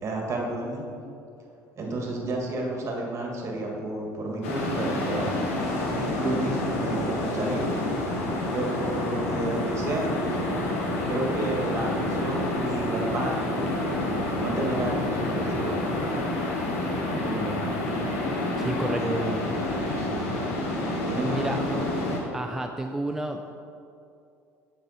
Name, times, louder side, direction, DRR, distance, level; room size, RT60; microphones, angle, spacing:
voice 1, 0.0-0.8 1.8-5.3 6.1-7.7 8.5-10.5 11.1-13.7 14.4-15.9 17.1-17.6 19.0-19.6 19.9-20.3 21.1-21.9, right 2 dB, 40° right, 0 dB, 1.8 m, -31 dB
sound 1, 4.4-22.2, left 1 dB, 90° left, 1.2 m, -28 dB
voice 2, 18.6-19.0 21.3-21.6 22.3-23.6, right 1 dB, 5° right, 4 dB, 0.4 m, -31 dB
7.3 x 6.3 x 4.2 m, 2.6 s
hypercardioid pair, 75°, 7 cm